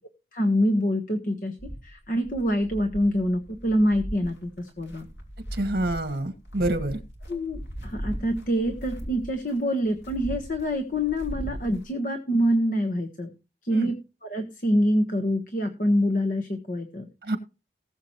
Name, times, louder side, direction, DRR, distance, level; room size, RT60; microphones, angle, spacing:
voice 1, 0.3-1.5 1.8-5.1 7.3-13.3 13.6-17.1, equal, 45° left, 6 dB, 1.4 m, -25 dB
sound 1, 1.6-11.8, equal, 85° left, 3.0 m, -38 dB
voice 2, 5.5-7.0 13.7-13.9 17.2-17.4, right 1 dB, 55° right, 6 dB, 2.0 m, -27 dB
19.0 x 7.4 x 3.1 m, 0.30 s
head